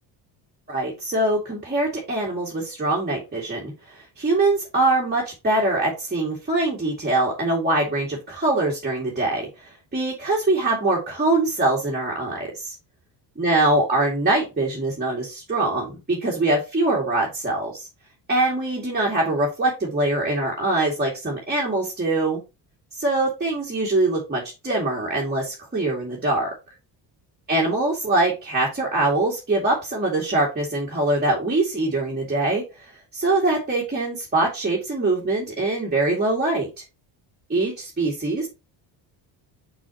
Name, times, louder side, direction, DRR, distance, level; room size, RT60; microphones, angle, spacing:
voice 1, 0.7-12.7 13.4-17.9 18.3-22.4 22.9-26.5 27.5-36.8 37.5-38.5, right 2 dB, 20° right, -3 dB, 2.5 m, -23 dB
6.0 x 5.9 x 2.9 m, 0.27 s
cardioid pair, 90°, 46 cm